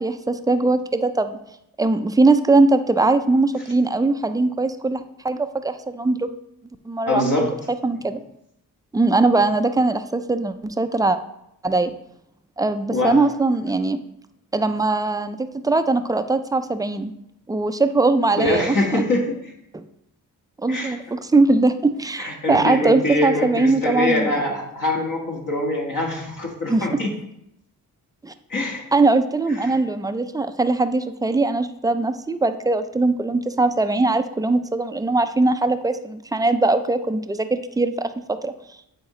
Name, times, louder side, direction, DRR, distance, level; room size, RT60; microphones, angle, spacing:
voice 1, 0.0-1.4 1.8-6.3 6.9-7.2 7.8-8.2 8.9-11.2 11.6-11.9 12.6-14.0 14.5-17.1 17.5-19.0 19.7-19.8 20.6-24.3 26.7-27.0 28.2-28.3 28.9-38.5, right 3 dB, 10° right, 10 dB, 0.4 m, -21 dB
voice 2, 7.1-7.5 12.9-13.3 18.3-19.3 20.7-21.0 22.2-27.1 28.5-28.8 29.6-29.8, left 1 dB, 60° left, 0 dB, 1.7 m, -23 dB
8.6 x 3.8 x 3.1 m, 0.79 s
cardioid pair, 60°, 37 cm